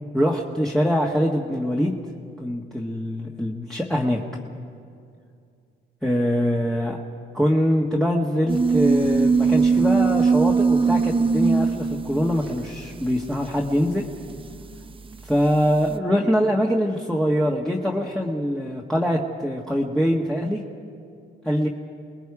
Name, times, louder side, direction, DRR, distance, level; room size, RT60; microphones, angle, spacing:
voice 1, 0.1-1.9 2.4-4.2 6.0-7.0 7.3-14.1 15.2-20.6 21.4-21.7, equal, 5° left, -2 dB, 1.6 m, -23 dB
sound 1, 8.5-15.7, right 4 dB, 25° right, 0.8 m, -21 dB
29.0 x 20.0 x 4.8 m, 2.4 s
cardioid pair, 90°, 20 cm